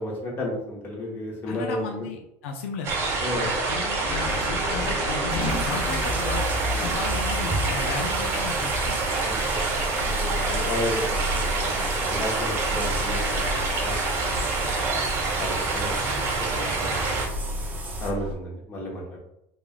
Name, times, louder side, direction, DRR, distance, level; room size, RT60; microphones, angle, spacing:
voice 1, 0.0-2.1 3.2-3.5 6.7-6.9 9.2-9.5 10.0-14.7 15.4-15.9 16.3-17.2 18.0-19.2, left 1 dB, 35° left, -2 dB, 1.0 m, -33 dB
voice 2, 1.5-2.9 3.3-6.4 6.8-9.1, left 4 dB, 85° left, 2 dB, 0.4 m, -34 dB
sound 1, 2.8-17.3, right 3 dB, 45° right, 0.8 m, -27 dB
sound 2, 4.1-18.4, left 1 dB, 65° left, 1.1 m, -34 dB
sound 3, 5.5-18.1, right 1 dB, 25° right, 0.4 m, -35 dB
3.2 x 2.3 x 2.3 m, 0.81 s
supercardioid pair, 120°, 7 cm